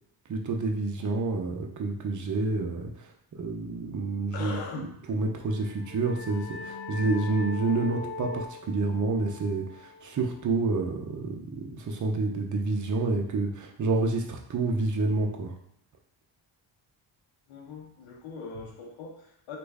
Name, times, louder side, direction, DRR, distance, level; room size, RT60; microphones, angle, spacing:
voice 1, 0.3-3.1 3.4-15.5, right 3 dB, 40° right, 2 dB, 0.7 m, -29 dB
voice 2, 4.3-4.9 17.5-19.6, left 4 dB, 85° left, 0 dB, 0.7 m, -40 dB
sound 1, 5.4-10.8, left 3 dB, 25° left, 0.4 m, -41 dB
3.0 x 2.5 x 3.5 m, 0.74 s
cardioid pair, 65°, 48 cm